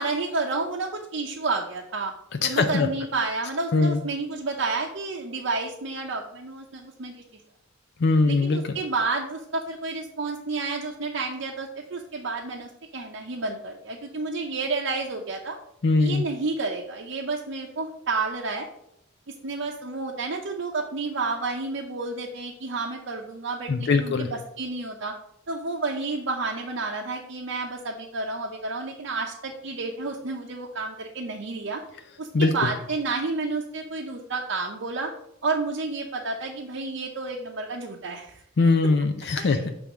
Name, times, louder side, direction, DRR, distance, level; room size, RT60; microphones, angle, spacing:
voice 1, 0.0-2.1 2.4-7.2 8.3-15.6 16.0-18.7 19.4-25.1 25.5-31.8 32.2-35.1 35.4-38.4 39.4-39.6, right 3 dB, 65° right, -1 dB, 0.7 m, -30 dB
voice 2, 2.4-2.9 3.7-4.0 8.0-8.8 15.8-16.2 23.7-24.3 32.3-32.7 38.6-39.7, left 3 dB, 55° left, 6 dB, 0.5 m, -21 dB
7.0 x 3.4 x 6.1 m, 0.78 s
head